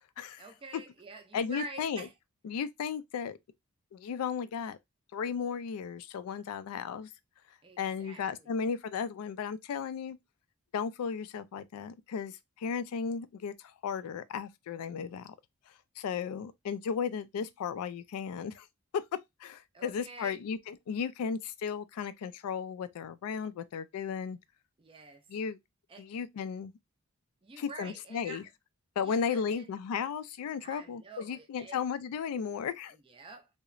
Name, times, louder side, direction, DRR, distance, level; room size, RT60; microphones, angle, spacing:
voice 1, 0.4-2.1 7.6-8.5 19.7-20.4 24.8-25.3 25.9-26.1 27.4-28.4 29.0-29.7 30.6-31.8 32.9-33.5, right 3 dB, 25° right, 0.3 m, -48 dB
voice 2, 1.3-2.1 2.4-3.4 3.9-4.8 5.1-7.1 7.8-10.2 10.7-15.3 16.0-18.7 18.9-19.0 19.4-24.4 25.3-25.6 26.0-26.7 27.6-28.4 29.0-33.0, left 6 dB, 85° left, 0.3 m, -35 dB
2.8 x 2.0 x 2.4 m
head